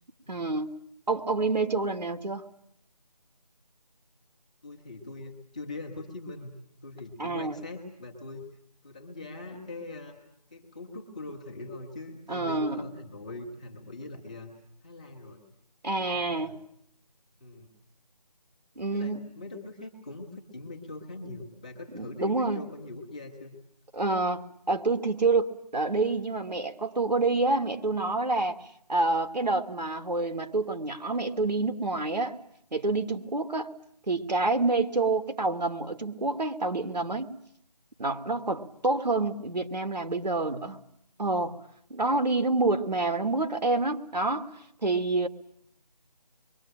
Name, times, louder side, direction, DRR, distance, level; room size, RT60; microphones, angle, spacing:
voice 1, 0.3-0.7 1.1-2.4 7.2-7.6 12.3-12.8 15.8-16.5 18.8-19.2 21.9-22.6 23.9-28.6 28.9-32.4 32.7-33.7 34.1-37.3 38.0-40.8 41.2-41.6 41.9-44.5 44.8-45.3, right 3 dB, 80° right, 6 dB, 2.6 m, -27 dB
voice 2, 4.6-6.6 6.8-8.4 8.8-10.2 10.5-14.5 14.8-15.4 15.9-16.5 17.4-17.7 18.9-23.6, left 2 dB, 10° left, -2 dB, 1.6 m, -42 dB
27.0 x 23.0 x 9.0 m, 0.70 s
figure-of-eight pair, 175°, 21 cm